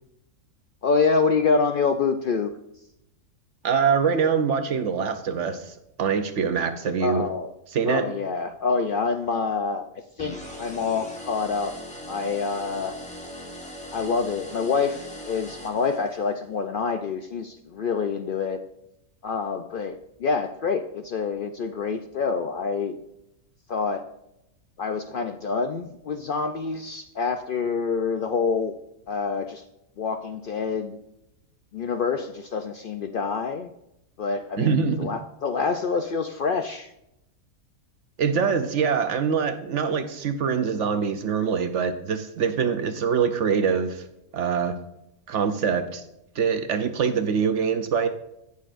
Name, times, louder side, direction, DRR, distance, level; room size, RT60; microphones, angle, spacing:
voice 1, 0.8-2.5 7.0-7.5 7.9-9.9 10.2-11.7 12.1-12.9 13.9-18.6 19.2-23.0 23.7-24.0 24.8-28.8 29.1-29.6 30.0-31.0 31.7-33.7 34.2-36.9, left 5 dB, 80° left, 7 dB, 0.4 m, -26 dB
voice 2, 3.6-7.3 7.7-8.1 34.6-35.1 38.2-44.0 44.3-44.7 45.3-46.0 46.4-48.1, right 6 dB, 65° right, 9 dB, 0.9 m, -24 dB
sound 1, 10.2-16.4, equal, 5° left, 1.4 m, -40 dB
16.5 x 6.6 x 2.5 m, 0.83 s
omnidirectional pair, 1.5 m